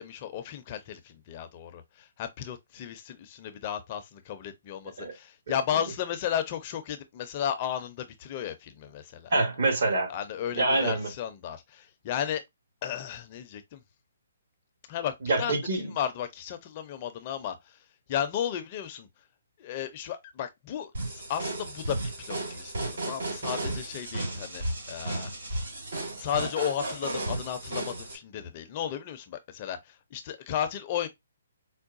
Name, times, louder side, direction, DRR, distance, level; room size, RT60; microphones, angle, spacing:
voice 1, 0.0-9.3 10.1-12.4 12.8-13.8 14.9-15.5 15.9-17.8 18.1-19.1 19.6-22.7 23.0-25.3 26.2-31.1, left 9 dB, 30° left, 0.5 m, -34 dB
voice 2, 9.3-10.1 10.5-11.1 15.2-15.9, right 2 dB, 60° right, 1.9 m, -26 dB
sound 1, 20.9-28.2, right 2 dB, 80° right, 2.2 m, -34 dB
4.6 x 2.2 x 2.5 m
hypercardioid pair, 160°, 0 cm